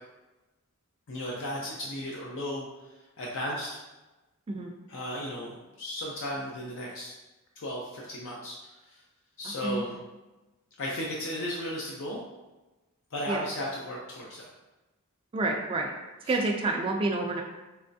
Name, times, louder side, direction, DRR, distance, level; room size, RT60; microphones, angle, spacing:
voice 1, 1.1-2.7 3.2-3.8 4.9-7.1 7.6-8.5 9.4-10.0 10.8-12.2 13.1-14.5, equal, 60° left, -3 dB, 0.5 m, -35 dB
voice 2, 15.3-15.9 16.3-17.4, right 2 dB, 25° right, 1 dB, 0.3 m, -28 dB
3.3 x 3.0 x 2.6 m, 1.1 s
head